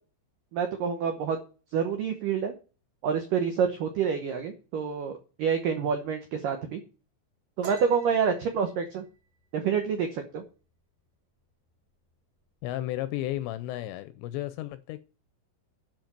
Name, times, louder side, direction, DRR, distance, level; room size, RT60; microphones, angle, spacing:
voice 1, 0.5-1.4 1.7-2.5 3.0-5.1 5.4-6.8 7.6-9.0 9.5-10.4, right 6 dB, 85° right, 1.9 m, -27 dB
sound 1, 7.6-11.1 11.4-11.7 12.1-12.6 12.9-13.6, right 6 dB, 65° right, 1.6 m, -49 dB
voice 2, 12.6-15.0, left 15 dB, 80° left, 2.6 m, -33 dB
10.5 x 5.2 x 7.4 m
omnidirectional pair, 5.5 m